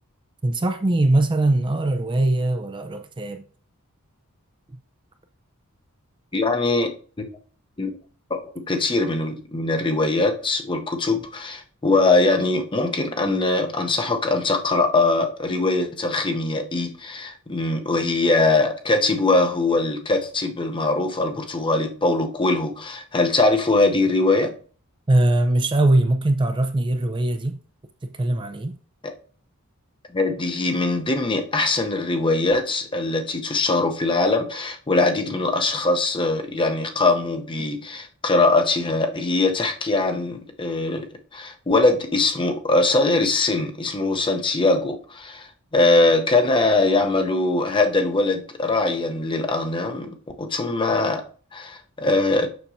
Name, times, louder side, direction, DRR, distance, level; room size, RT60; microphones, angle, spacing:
voice 1, 0.4-3.4 25.1-27.6 28.0-28.8, right 1 dB, 20° right, 0.4 m, -21 dB
voice 2, 6.3-6.9 7.8-8.0 8.3-8.4 8.7-24.5 29.0-29.1 30.1-45.5 45.7-51.2 51.5-52.5, left 2 dB, 25° left, 0.7 m, -22 dB
6.9 x 6.0 x 2.6 m
head